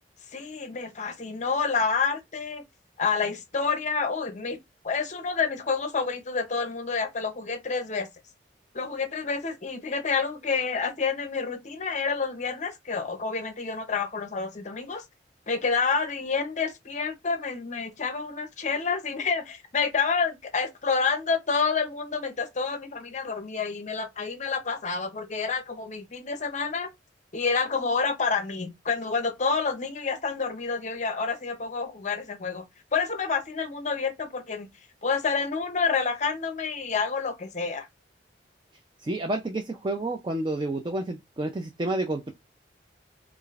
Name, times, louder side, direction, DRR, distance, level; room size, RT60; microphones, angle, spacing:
voice 1, 0.3-2.6 3.0-4.6 4.8-8.1 8.7-15.0 15.5-26.9 27.3-32.6 32.9-34.7 35.0-37.9, left 5 dB, 40° left, 0.7 m, -28 dB
voice 2, 39.0-42.3, right 2 dB, 25° right, 0.4 m, -30 dB
4.8 x 2.5 x 2.4 m
head